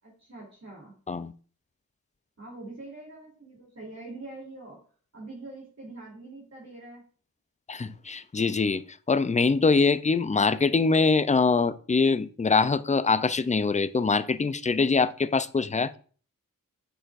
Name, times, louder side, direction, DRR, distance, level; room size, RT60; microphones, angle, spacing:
voice 1, 0.0-0.9 2.4-4.8 5.1-7.0, right 2 dB, 50° right, 3.1 m, -44 dB
voice 2, 7.7-16.0, left 4 dB, 20° left, 0.4 m, -24 dB
8.8 x 6.9 x 2.5 m
wide cardioid pair, 60°, 35 cm